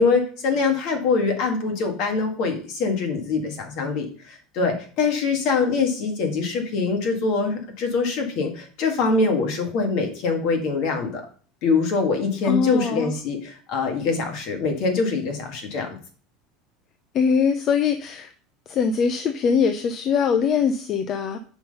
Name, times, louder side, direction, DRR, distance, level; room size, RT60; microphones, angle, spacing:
voice 1, 0.0-11.3 11.6-16.0, left 4 dB, 60° left, 4 dB, 1.8 m, -24 dB
voice 2, 12.4-13.1 17.1-18.3 18.7-21.4, left 6 dB, 40° left, 7 dB, 0.6 m, -22 dB
6.0 x 3.9 x 5.4 m, 0.43 s
supercardioid pair, 125°, 0 cm